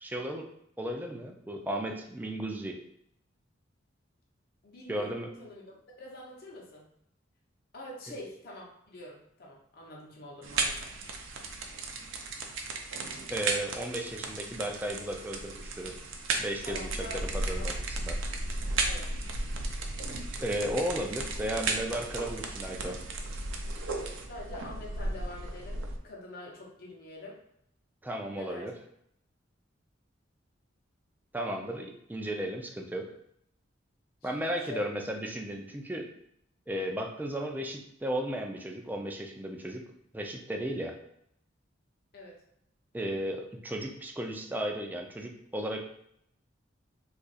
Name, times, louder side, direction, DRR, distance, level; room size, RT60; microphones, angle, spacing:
voice 1, 0.0-0.5 0.8-2.8 4.9-5.3 13.3-15.9 16.4-16.9 17.1-18.2 20.4-23.0 28.0-28.7 31.3-33.1 34.2-36.1 36.7-39.8 40.1-41.0 42.9-45.8, right 1 dB, 10° right, 1 dB, 0.4 m, -34 dB
voice 2, 4.6-6.8 7.7-11.0 16.6-17.8 18.8-19.1 24.3-27.4 28.3-28.7 34.2-34.9 42.1-42.4, left 1 dB, 50° left, -2 dB, 0.8 m, -45 dB
sound 1, 10.4-26.0, right 3 dB, 85° right, 0.5 m, -35 dB
2.7 x 2.5 x 4.0 m, 0.73 s
head